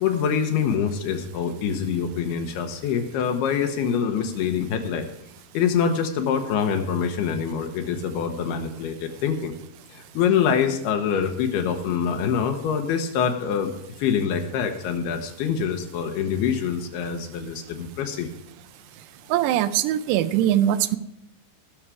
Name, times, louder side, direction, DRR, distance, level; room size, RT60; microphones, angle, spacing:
voice 1, 0.0-5.1 5.5-9.5 9.9-13.7 14.0-18.3, left 7 dB, 75° left, 5 dB, 2.9 m, -25 dB
voice 2, 19.3-21.0, right 12 dB, 85° right, 12 dB, 2.7 m, -21 dB
18.5 x 6.4 x 4.8 m, 0.83 s
omnidirectional pair, 4.7 m